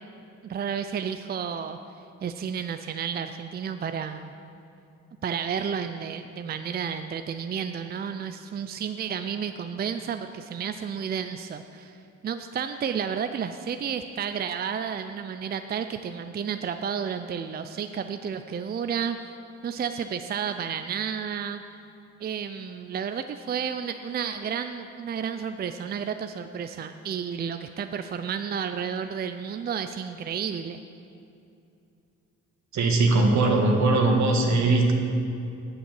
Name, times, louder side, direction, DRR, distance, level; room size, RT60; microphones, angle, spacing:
voice 1, 0.4-1.8 2.2-4.3 5.2-12.0 12.2-19.2 19.6-21.6 22.2-30.8, right 7 dB, 35° right, 9 dB, 0.4 m, -31 dB
voice 2, 32.7-34.9, right 2 dB, 70° right, 3 dB, 1.6 m, -20 dB
8.4 x 7.1 x 7.5 m, 2.6 s
cardioid pair, 90°, 30 cm